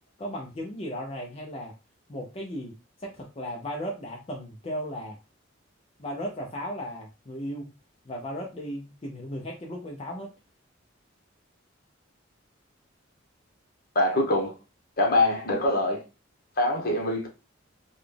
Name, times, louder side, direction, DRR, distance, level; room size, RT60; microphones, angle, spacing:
voice 1, 0.2-1.7 2.1-2.7 3.0-5.2 6.0-7.7 8.1-10.3, equal, 30° left, 0.6 m, -36 dB
voice 2, 13.9-14.5 15.0-16.0 16.6-17.3, left 1 dB, 50° left, 1.1 m, -24 dB
4.0 x 2.3 x 3.3 m
head